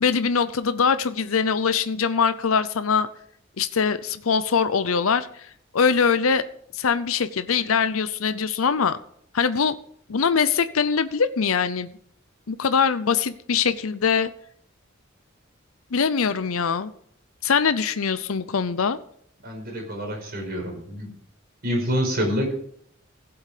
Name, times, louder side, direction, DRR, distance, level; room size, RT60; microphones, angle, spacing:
voice 1, 0.0-3.1 3.6-5.3 5.7-6.4 6.7-9.0 9.3-9.7 10.1-11.9 12.5-14.3 15.9-16.9 17.4-19.0, left 6 dB, 85° left, 13 dB, 0.7 m, -22 dB
voice 2, 19.4-21.1 21.6-22.6, equal, 50° right, 2 dB, 5.0 m, -27 dB
16.0 x 7.8 x 5.0 m, 0.65 s
head